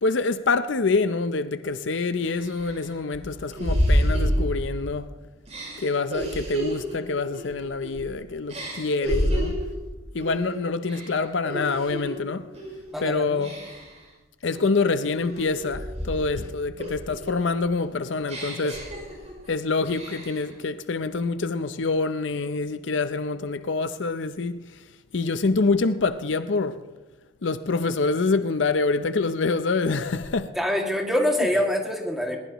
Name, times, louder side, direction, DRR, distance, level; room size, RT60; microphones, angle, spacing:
voice 1, 0.0-5.1 5.8-9.5 10.1-12.5 13.0-13.5 14.4-18.8 19.5-24.6 25.1-26.8 27.4-30.5, left 3 dB, 70° left, 0.6 m, -26 dB
sound 1, 1.6-1.7 2.3-5.0 5.5-8.1 8.5-9.7 10.2-10.5 10.8-12.1 12.5-12.9 13.4-14.0 14.5-16.4 16.8-19.5 19.8-20.5, equal, 35° right, 6.2 m, -29 dB
voice 2, 12.9-13.5 30.5-32.4, left 1 dB, ahead, 2.2 m, -25 dB
21.0 x 20.0 x 3.1 m
head